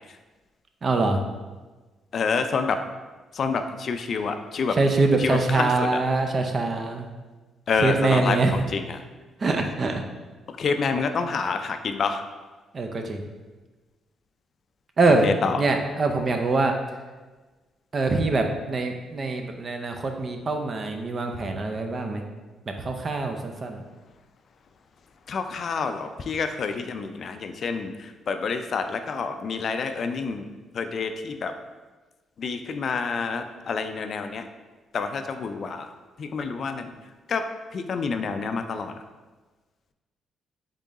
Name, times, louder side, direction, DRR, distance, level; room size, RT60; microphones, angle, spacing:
voice 1, 0.8-1.2 4.7-7.1 7.8-8.6 9.4-10.0 12.7-13.2 15.0-15.3 15.6-16.7 17.9-22.2 22.7-23.8, right 3 dB, 40° right, 4 dB, 0.5 m, -24 dB
voice 2, 2.1-2.8 3.4-4.8 5.2-5.9 7.7-8.4 8.7-8.8 10.6-12.2 15.2-15.5 25.3-27.9 28.3-30.5 30.8-31.5 32.4-34.4 34.9-35.9 36.2-36.9 37.3-37.4 37.7-38.9, left 5 dB, 55° left, 8 dB, 0.4 m, -27 dB
3.7 x 3.6 x 4.0 m, 1.3 s
cardioid pair, 90°, 0 cm